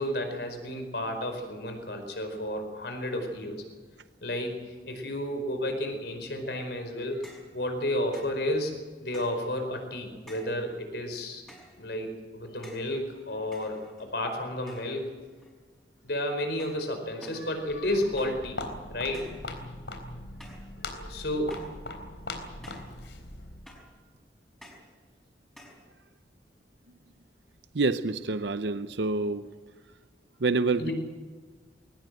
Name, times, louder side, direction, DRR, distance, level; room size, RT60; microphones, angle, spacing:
voice 1, 0.0-3.6 4.2-11.4 11.8-15.1 16.0-18.6 18.9-19.2 20.8-21.6 30.8-30.9, left 1 dB, 70° left, 5 dB, 4.8 m, -32 dB
sound 1, 7.2-7.5 8.1-8.4 9.1-9.5 10.3-10.6 11.5-11.8 12.6-12.9 13.5-14.2 14.7-15.1 15.4-15.8 16.6-16.9 17.2-17.5 18.2-18.5 19.1-19.5 20.4-20.7 21.5-21.8 22.6-23.0 23.7-24.0 24.6-24.9 25.6-25.9, equal, 5° left, 5.4 m, -51 dB
Walk footsteps, 17.7-23.7, left 2 dB, 85° left, 3.8 m, -40 dB
voice 2, 27.7-29.5 30.4-30.9, right 3 dB, 75° right, 11 dB, 0.7 m, -27 dB
21.5 x 18.5 x 7.8 m, 1.5 s
head